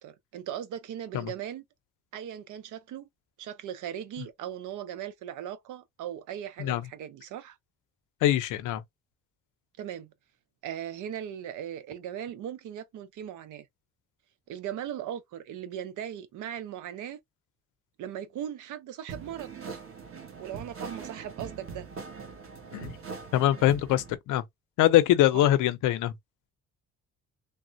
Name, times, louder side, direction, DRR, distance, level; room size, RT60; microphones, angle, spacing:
voice 1, 0.0-1.6 2.1-3.1 3.4-7.6 9.8-10.1 10.6-13.7 14.5-17.2 18.0-19.8 20.4-21.9 25.3-25.5, right 10 dB, 80° right, 0.7 m, -38 dB
voice 2, 8.2-8.8 22.7-22.9 23.3-24.4 24.8-26.1, left 13 dB, 90° left, 0.6 m, -23 dB
sound 1, 19.1-24.2, right 5 dB, 45° right, 1.3 m, -42 dB
3.4 x 2.1 x 2.5 m
cardioid pair, 90°, 30 cm